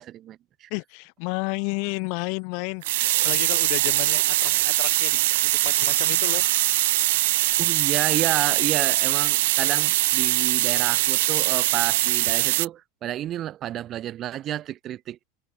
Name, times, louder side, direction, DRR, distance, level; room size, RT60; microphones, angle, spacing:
voice 1, 0.0-0.7 7.6-15.2, right 12 dB, 35° right, 1.4 m, -31 dB
voice 2, 0.7-6.5 9.6-9.8, left 40 dB or more, 60° left, 1.6 m, -32 dB
sound 1, 1.3-2.8 3.7-10.3, left 11 dB, 90° left, 6.1 m, -50 dB
sound 2, 2.8-12.7, right 18 dB, 70° right, 0.5 m, -22 dB
supercardioid pair, 120°, 0 cm